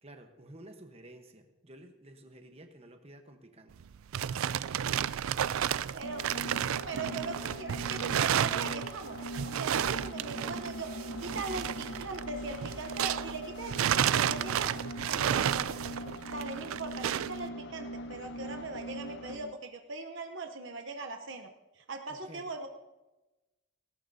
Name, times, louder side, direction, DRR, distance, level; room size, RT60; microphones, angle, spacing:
voice 1, 0.0-4.1 22.1-22.5, right 1 dB, 30° right, 5 dB, 1.0 m, -52 dB
sound 1, 3.7-13.4 13.7-17.4, right 9 dB, 80° right, 0.4 m, -32 dB
voice 2, 5.9-6.3 6.9-9.2 9.4-15.7 16.3-21.5 21.7-22.7, right 3 dB, 60° right, 5 dB, 0.8 m, -40 dB
sound 2, 6.0-19.5, equal, 55° left, 0.7 m, -42 dB
sound 3, 9.3-15.9, equal, 90° left, 2.8 m, -53 dB
18.0 x 17.5 x 2.7 m, 1.1 s
head